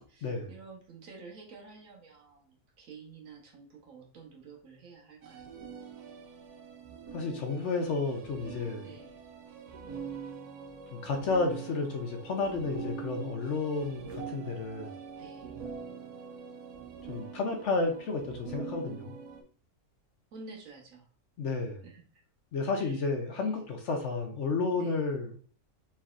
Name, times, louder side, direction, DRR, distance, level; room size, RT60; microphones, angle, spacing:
voice 1, 0.1-5.6 8.8-9.2 15.2-15.6 20.3-21.1 21.8-22.2 22.8-23.0 23.4-23.6 24.7-25.0, right 4 dB, 65° right, 1 dB, 1.4 m, -50 dB
sound 1, 5.2-19.4, right 6 dB, 85° right, 1.2 m, -44 dB
voice 2, 7.1-8.9 10.9-14.9 17.1-19.1 21.4-21.8 22.5-25.4, left 3 dB, 60° left, 4 dB, 0.9 m, -31 dB
4.3 x 3.4 x 2.4 m, 0.42 s
omnidirectional pair, 1.6 m